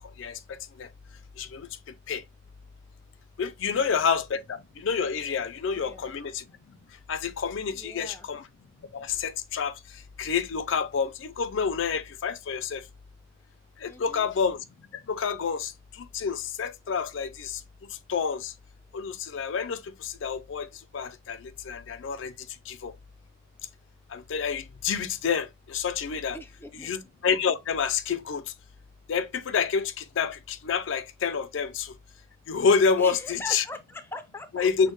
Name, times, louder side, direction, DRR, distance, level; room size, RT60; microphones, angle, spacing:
voice 1, 0.2-0.9 1.4-2.2 3.4-6.8 7.1-8.4 8.9-12.8 13.8-14.6 14.9-17.6 17.9-18.5 18.9-20.7 20.9-22.9 24.1-26.4 26.8-28.5 29.1-31.9 32.5-33.6 34.5-34.9, left 6 dB, 70° left, 0.4 m, -29 dB
voice 2, 3.6-4.0 5.7-6.1 7.7-8.3 13.9-14.3 26.3-26.9 33.0-34.7, left 2 dB, 10° left, 0.5 m, -41 dB
6.3 x 2.1 x 3.0 m
head